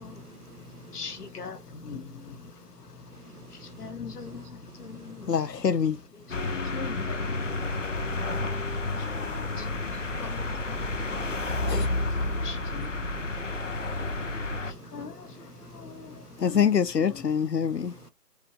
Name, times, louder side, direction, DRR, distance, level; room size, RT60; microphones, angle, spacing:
voice 1, 0.0-1.3 3.2-3.8 4.3-4.5 4.8-5.3 6.6-6.8 8.3-8.5 8.9-9.0 9.5-9.9 10.4-10.6 11.0-11.3 11.6-11.8 12.5-12.6 13.0-13.3 14.1-14.3 14.6-15.0 15.3-15.7 16.1-16.2, right 7 dB, 65° right, 0.8 m, -52 dB
voice 2, 0.9-1.6 1.8-2.1 3.8-4.4 4.8-5.2 6.5-7.5 9.6-9.7 10.2-10.4 11.7-12.0 12.4-12.9 14.9-15.1 16.4-16.6 17.0-17.1, left 5 dB, 70° left, 1.3 m, -39 dB
voice 3, 5.3-6.0 11.7-11.9 16.4-17.9, left 7 dB, 85° left, 1.0 m, -25 dB
sound 1, 6.3-14.7, left 2 dB, 50° left, 0.7 m, -30 dB
4.2 x 3.7 x 3.1 m
hypercardioid pair, 180°, 48 cm